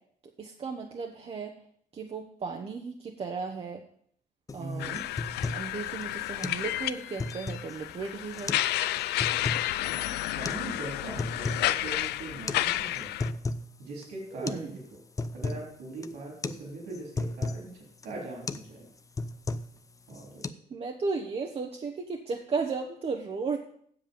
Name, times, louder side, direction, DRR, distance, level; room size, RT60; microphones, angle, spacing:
voice 1, 0.4-1.5 1.9-3.8 4.5-4.9 5.5-8.6 14.3-14.7 20.7-23.6, right 4 dB, 35° right, 2 dB, 1.0 m, -35 dB
sound 1, 4.5-4.6 4.9-5.7 6.0-6.1 6.4-6.6 7.0-7.8 8.3-8.7 9.0-9.7 10.4-10.6 11.0-11.7 12.0-12.1 12.5-12.6 13.0-13.7 14.0-14.1 14.5-14.7 14.9-15.7 16.0-16.2 16.4-16.6 16.9-17.6 18.0-18.2 18.5-18.7 19.0-19.8 20.1-20.5, left 3 dB, 20° left, 0.5 m, -34 dB
voice 2, 4.6-5.0 9.9-13.1 13.8-14.7 15.3-18.9 20.1-20.5, right 2 dB, 75° right, -1 dB, 3.5 m, -41 dB
sound 2, 4.8-13.3, left 15 dB, 75° left, 0.4 m, -31 dB
7.9 x 7.3 x 6.9 m, 0.64 s
cardioid pair, 110°, 17 cm